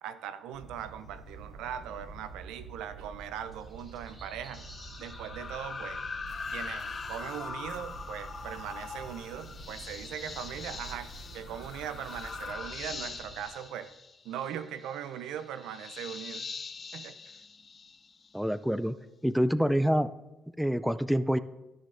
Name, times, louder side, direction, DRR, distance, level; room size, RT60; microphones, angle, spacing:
voice 1, 0.0-4.7 5.0-6.0 6.5-13.9 14.2-16.5 16.9-17.4, right 9 dB, 80° right, 13 dB, 0.6 m, -40 dB
sound 1, 0.5-13.4, right 3 dB, 20° right, 3.3 m, -48 dB
sound 2, 4.5-18.4, left 4 dB, 35° left, 0.8 m, -42 dB
sound 3, 6.3-12.5, left 3 dB, 60° left, 2.2 m, -55 dB
voice 2, 18.3-18.9 19.2-20.1 20.6-21.4, equal, ahead, 15 dB, 0.4 m, -26 dB
13.0 x 6.5 x 3.8 m, 0.98 s
cardioid pair, 80°, 0 cm